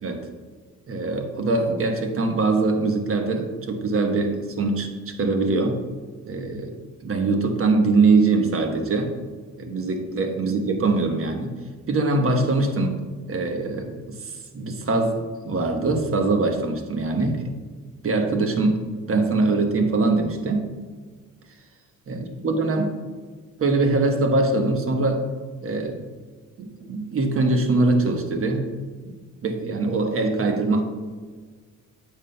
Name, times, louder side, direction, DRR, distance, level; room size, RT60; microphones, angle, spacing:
voice 1, 0.9-5.8 6.3-6.8 7.0-9.1 9.6-11.5 11.9-13.0 13.3-17.5 18.0-20.7 22.1-22.9 23.6-25.2 25.6-26.0 26.6-28.7 29.0-29.1 29.4-30.8, right 3 dB, 45° right, 4 dB, 1.1 m, -23 dB
9.4 x 7.1 x 2.2 m, 1.5 s
cardioid pair, 90°, 30 cm